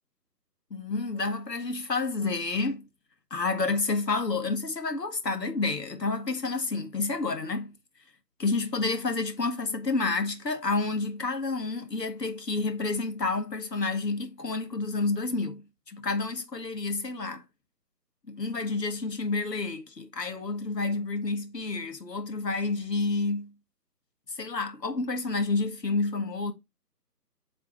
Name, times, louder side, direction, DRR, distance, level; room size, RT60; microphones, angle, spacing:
voice 1, 0.7-2.9 3.3-7.8 8.4-17.4 18.3-23.5 24.3-26.5, left 3 dB, 85° left, 1.7 m, -29 dB
8.0 x 3.5 x 3.7 m
figure-of-eight pair, 155°, 48 cm